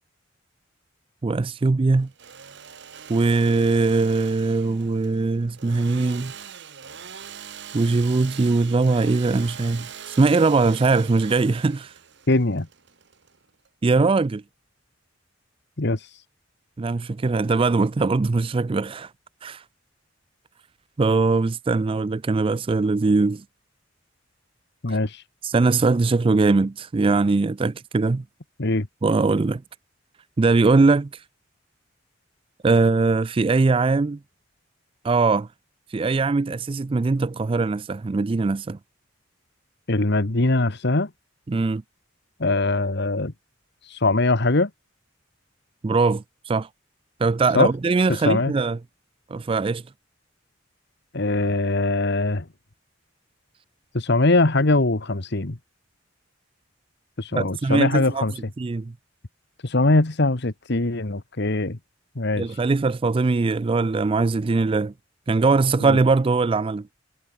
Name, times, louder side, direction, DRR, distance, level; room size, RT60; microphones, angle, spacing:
voice 1, 1.2-2.1 3.1-6.3 7.7-11.9 13.8-14.4 16.8-19.1 19.4-19.6 21.0-23.4 24.9-25.0 25.4-28.2 29.0-29.6 30.4-31.2 32.6-34.2 35.0-35.5 35.9-38.8 41.5-41.8 45.8-46.7 47.2-48.8 49.3-49.8 57.4-58.3 58.6-58.9 62.4-64.9 65.3-66.9, right 3 dB, 30° right, 0.4 m, -21 dB
Engine / Sawing, 2.0-13.7, right 7 dB, 60° right, 2.0 m, -42 dB
voice 2, 12.3-12.7 15.8-16.2 24.8-25.2 28.6-28.9 39.9-41.1 42.4-43.3 43.8-44.7 47.5-47.7 48.1-48.5 51.1-52.4 53.9-55.6 57.2-58.3 59.6-61.8 62.1-62.6 65.8-66.0, left 2 dB, 60° left, 1.5 m, -22 dB
head